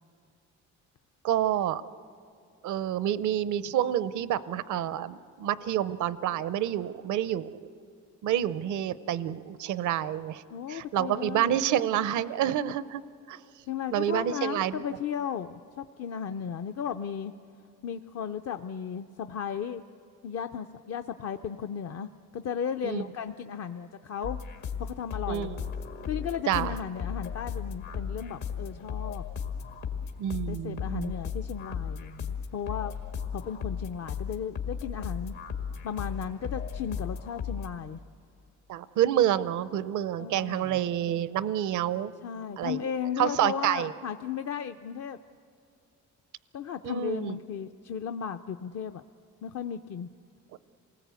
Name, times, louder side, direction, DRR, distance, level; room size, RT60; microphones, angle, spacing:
voice 1, 1.2-1.8 2.6-7.6 8.2-10.4 10.7-13.0 13.3-13.4 13.9-14.8 22.8-23.0 25.3-25.6 26.5-26.7 30.2-31.1 38.7-42.1 42.6-42.8 43.2-43.9 46.8-47.4, right 11 dB, 75° right, 15 dB, 0.7 m, -28 dB
voice 2, 10.5-11.6 13.7-17.3 17.8-19.8 20.2-24.4 24.8-25.5 26.1-29.3 30.5-32.9 33.3-35.3 35.8-38.0 40.2-40.9 42.2-45.2 46.5-49.0 49.4-50.1, left 8 dB, 55° left, 7 dB, 0.6 m, -35 dB
sound 1, 24.2-37.7, left 7 dB, 80° left, 2.0 m, -36 dB
27.5 x 19.0 x 8.3 m, 2.5 s
cardioid pair, 90°, 30 cm